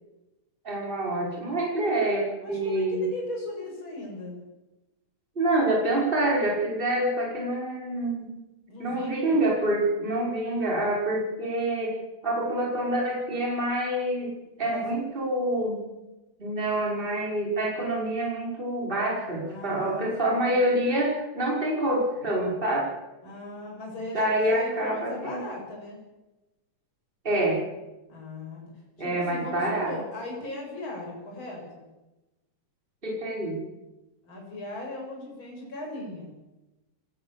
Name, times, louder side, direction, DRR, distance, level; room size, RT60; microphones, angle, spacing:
voice 1, 0.6-3.1 5.4-8.3 8.8-12.0 12.2-15.8 16.4-22.9 24.1-25.4 27.2-27.6 29.0-29.9 33.0-33.6, right 1 dB, 15° right, -2 dB, 5.5 m, -26 dB
voice 2, 2.4-4.4 8.7-9.4 14.7-14.8 19.5-20.6 23.2-26.0 28.1-28.6 29.0-31.9 34.2-36.3, left 2 dB, 35° left, -1 dB, 8.1 m, -38 dB
25.5 x 18.5 x 7.4 m, 1.0 s
omnidirectional pair, 3.7 m